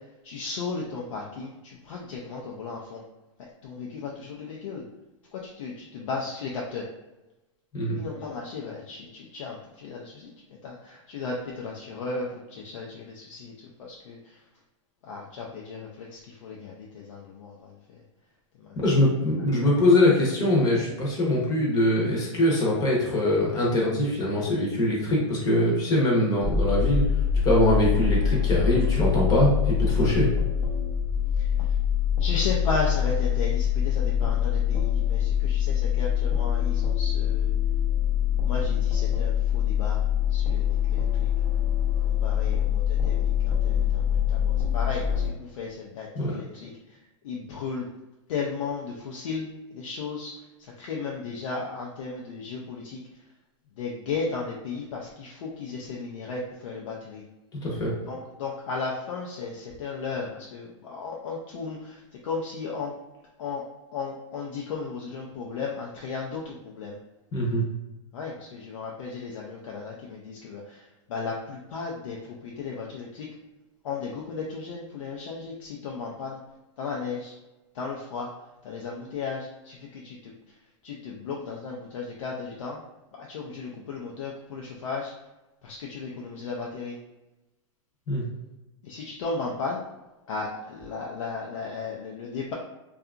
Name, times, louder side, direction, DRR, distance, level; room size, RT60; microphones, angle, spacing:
voice 1, 0.2-3.0 3.4-4.8 5.3-6.9 7.9-13.5 13.8-14.4 15.0-17.8 18.6-18.8 31.4-31.8 32.2-37.5 38.4-40.0 40.3-41.3 42.0-47.0 47.2-47.9 48.3-53.0 53.8-57.2 58.1-62.9 63.4-63.6 63.9-67.0 68.1-73.3 73.8-76.4 76.8-77.3 77.7-78.3 78.6-80.3 80.8-82.8 83.1-85.1 85.6-87.0 88.8-89.8 90.3-92.5, left 4 dB, 75° left, -2 dB, 0.5 m, -35 dB
voice 2, 18.8-27.0 27.4-30.3 46.1-46.3 57.6-57.9 67.3-67.6 88.1-88.2, left 1 dB, 25° left, -3 dB, 0.8 m, -23 dB
sound 1, 26.4-45.3, left 8 dB, ahead, 0.5 m, -24 dB
2.7 x 2.3 x 2.4 m, 1.0 s
hypercardioid pair, 140°, 17 cm